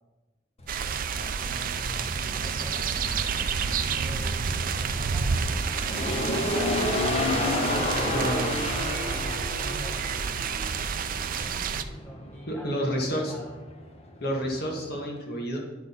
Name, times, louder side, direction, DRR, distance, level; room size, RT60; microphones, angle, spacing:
sound 1, 0.6-15.1, left 1 dB, 35° left, 1.0 m, -32 dB
sound 2, 0.7-11.8, right 6 dB, 50° right, 0.4 m, -30 dB
voice 1, 0.9-3.4 3.7-4.4 4.8-6.9 7.9-10.1 11.5-13.6, equal, 10° left, -2 dB, 1.1 m, -45 dB
voice 2, 8.1-8.4 12.5-13.3 14.2-15.6, equal, 60° left, 0 dB, 1.8 m, -29 dB
9.6 x 5.8 x 4.1 m, 1.1 s
head